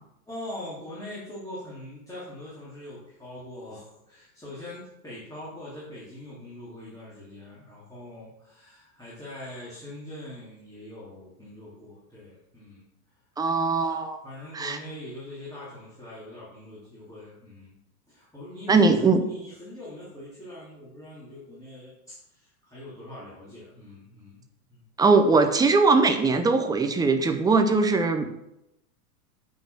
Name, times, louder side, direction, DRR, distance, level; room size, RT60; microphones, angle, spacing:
voice 1, 0.3-12.9 14.2-17.8 18.1-19.0 19.2-24.4 24.7-24.9, left 1 dB, 5° left, -9 dB, 3.0 m, -42 dB
voice 2, 13.4-14.2 14.5-14.8 18.7-19.3 25.0-28.3, right 4 dB, 10° right, 6 dB, 0.5 m, -20 dB
7.6 x 5.5 x 6.2 m, 0.84 s
supercardioid pair, 135°, 45 cm